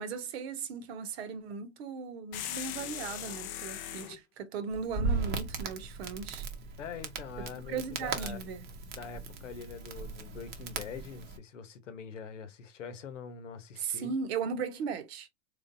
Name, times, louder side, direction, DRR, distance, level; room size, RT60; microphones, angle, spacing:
voice 1, 0.0-6.5 7.4-8.7 13.8-15.3, right 5 dB, 60° right, 1.1 m, -37 dB
sound 1, 2.3-4.2, left 11 dB, 25° left, 0.4 m, -39 dB
Crackle, 4.7-11.4, right 4 dB, 30° right, 0.8 m, -37 dB
voice 2, 6.8-8.4 8.9-14.1, left 6 dB, 85° left, 1.0 m, -44 dB
3.8 x 3.3 x 2.6 m
hypercardioid pair, 130°, 36 cm